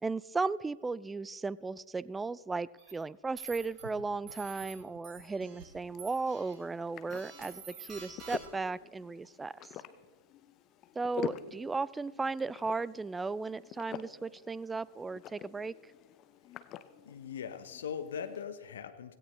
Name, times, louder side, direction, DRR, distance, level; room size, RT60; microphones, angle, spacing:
voice 1, 0.0-9.7 11.0-15.7, right 4 dB, 10° right, 22 dB, 0.3 m, -36 dB
sound 1, 2.8-2.9 3.4-3.8 4.3-4.7 5.0-5.6 6.0-6.5 7.1-8.7, right 5 dB, 30° right, 4.2 m, -48 dB
sound 2, 3.8-6.0, right 7 dB, 70° right, 1.0 m, -53 dB
sound 3, 5.5-18.4, left 11 dB, 35° left, 0.7 m, -47 dB
voice 2, 17.1-19.2, left 7 dB, 65° left, 10 dB, 1.1 m, -40 dB
17.0 x 16.0 x 3.3 m, 1.3 s
figure-of-eight pair, 100°, 0 cm